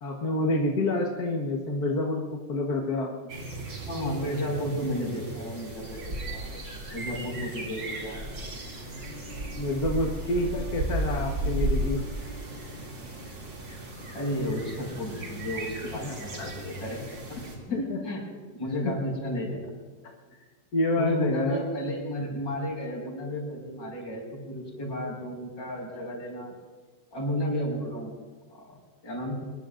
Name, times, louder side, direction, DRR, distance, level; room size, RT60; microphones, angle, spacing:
voice 1, 0.0-2.2 2.5-3.1 9.6-12.0 15.9-16.5 17.7-18.0 18.6-18.9 20.7-21.6, left 2 dB, 55° left, 0 dB, 1.8 m, -28 dB
sound 1, 3.3-17.6, right 1 dB, 75° right, 3.5 m, -35 dB
voice 2, 3.8-6.5 6.9-8.2 14.1-17.0 17.3-18.2 18.5-19.7 21.0-26.5 27.1-28.2 28.5-29.3, equal, 80° left, -2 dB, 6.2 m, -33 dB
Wind instrument woodwind instrument, 9.0-13.3, equal, 30° left, 5.0 m, -49 dB
25.0 x 22.0 x 2.6 m, 1.4 s
omnidirectional pair, 2.0 m